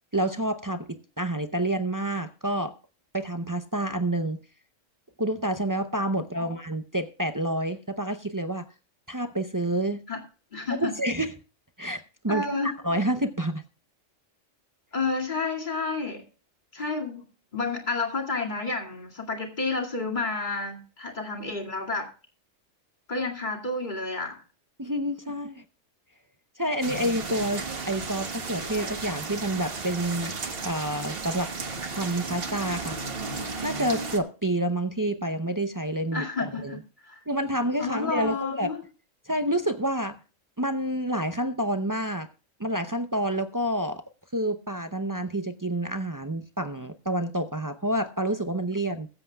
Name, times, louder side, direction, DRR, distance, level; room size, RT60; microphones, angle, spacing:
voice 1, 0.1-2.7 3.1-4.4 5.2-8.7 9.1-10.0 10.7-11.3 11.8-13.6 24.8-25.6 26.6-30.3 30.6-31.5 31.9-33.0 33.6-36.8 37.3-38.7 39.3-40.2 40.6-42.3 42.6-44.0 44.3-49.1, right 1 dB, 25° right, 0.4 m, -28 dB
voice 2, 10.5-10.9 12.3-12.7 14.9-16.2 16.7-17.3 17.5-22.1 23.1-24.4 36.1-36.8 37.0-37.2 37.8-38.8, left 3 dB, 35° left, 2.4 m, -30 dB
sound 1, 26.8-34.2, right 4 dB, 45° right, 1.4 m, -34 dB
21.5 x 8.0 x 2.3 m
omnidirectional pair, 1.4 m